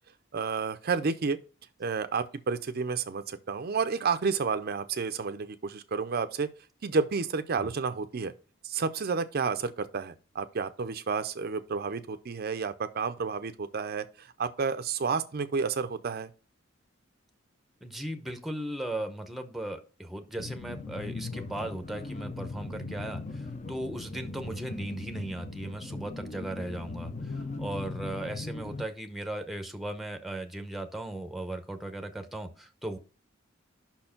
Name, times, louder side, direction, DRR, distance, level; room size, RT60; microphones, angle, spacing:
voice 1, 0.3-1.4 1.8-6.5 6.8-8.3 8.6-16.3, right 5 dB, 50° right, 0.5 m, -31 dB
voice 2, 17.8-33.0, right 1 dB, ahead, 0.7 m, -37 dB
sound 1, 20.4-28.8, left 3 dB, 35° left, 0.6 m, -39 dB
5.8 x 4.4 x 5.7 m
head